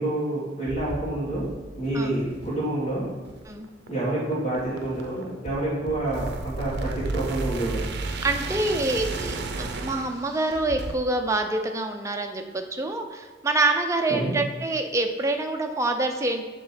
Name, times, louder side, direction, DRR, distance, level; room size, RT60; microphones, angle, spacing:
voice 1, 0.0-1.5 1.7-3.1 3.9-7.8 14.1-14.3, right 1 dB, 35° left, -10 dB, 1.8 m, -28 dB
sound 1, 0.7-11.0, right 3 dB, 60° right, 0.6 m, -34 dB
voice 2, 8.2-16.4, right 2 dB, 15° right, 4 dB, 0.5 m, -26 dB
7.4 x 3.0 x 5.8 m, 1.3 s
head